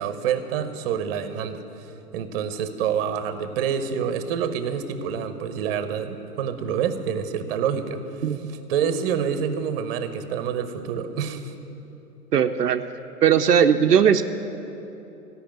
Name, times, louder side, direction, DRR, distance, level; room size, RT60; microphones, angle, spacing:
voice 1, 0.0-1.6 2.1-8.0 8.3-11.5, right 7 dB, 40° right, 10 dB, 0.8 m, -27 dB
voice 2, 12.3-12.8 13.2-14.2, right 8 dB, 85° right, 8 dB, 0.6 m, -18 dB
13.5 x 5.6 x 8.7 m, 3.0 s
figure-of-eight pair, 110°, 47 cm